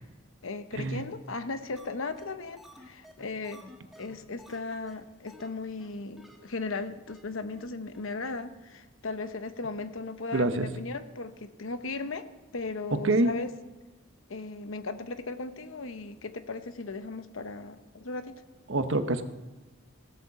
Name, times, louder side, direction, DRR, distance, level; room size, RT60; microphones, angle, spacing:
voice 1, 0.4-3.6 4.0-12.3 12.5-13.5 14.3-18.4, left 3 dB, 75° left, 10 dB, 0.9 m, -37 dB
sound 1, 1.8-1.9 2.2-2.3 2.6-4.6 4.9-5.0 5.3-5.5 5.8-5.9 6.2-6.4 6.6-6.7 7.1-7.2 7.6-7.7 7.9-8.0, equal, ahead, 1.5 m, -51 dB
voice 2, 10.3-10.7 12.9-13.3 18.7-19.2, right 2 dB, 65° right, 9 dB, 0.9 m, -26 dB
16.5 x 8.1 x 7.0 m, 1.2 s
head